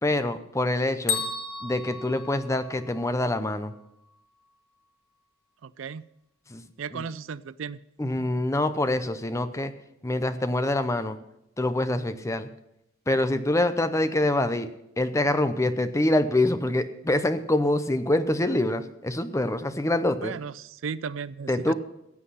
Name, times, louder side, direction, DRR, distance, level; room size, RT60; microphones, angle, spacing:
voice 1, 0.0-1.2 1.6-3.7 6.5-7.0 8.0-9.7 10.0-11.2 11.6-12.5 13.1-14.7 15.0-20.3 21.5-21.7, left 1 dB, 15° left, 11 dB, 0.6 m, -25 dB
Bell, 1.1-3.1, left 5 dB, 50° left, 1.9 m, -33 dB
voice 2, 5.6-6.0 6.8-7.8 20.2-21.7, right 6 dB, 75° right, 18 dB, 0.4 m, -35 dB
15.5 x 8.2 x 5.7 m, 0.84 s
head